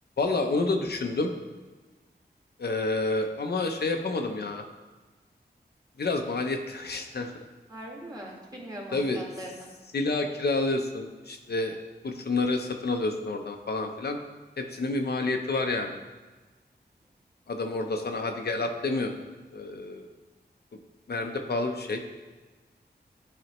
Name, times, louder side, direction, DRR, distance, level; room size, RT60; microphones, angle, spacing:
voice 1, 0.2-1.3 2.6-4.6 6.0-7.3 8.9-9.2 9.9-11.8 12.0-14.2 14.6-16.0 17.5-19.1 19.5-20.1 21.1-22.0, left 3 dB, 65° left, 4 dB, 0.6 m, -29 dB
voice 2, 7.7-9.7, equal, 20° right, -3 dB, 1.6 m, -41 dB
10.5 x 4.1 x 3.0 m, 1.3 s
wide cardioid pair, 95°, 18 cm